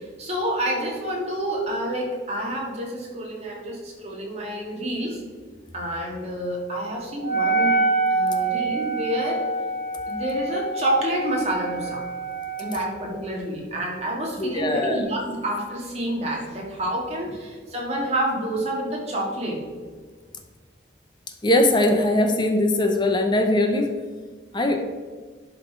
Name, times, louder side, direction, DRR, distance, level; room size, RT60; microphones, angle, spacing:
voice 1, 0.0-5.2 5.7-7.8 8.1-9.4 10.1-12.0 12.6-19.6, right 1 dB, 35° right, -2 dB, 1.7 m, -28 dB
Wind instrument woodwind instrument, 7.2-13.0, right 3 dB, 45° left, 2.0 m, -26 dB
voice 2, 14.4-15.0 21.4-23.9 24.5-24.8, left 1 dB, 25° left, 5 dB, 0.7 m, -20 dB
11.0 x 4.1 x 4.5 m, 1.5 s
head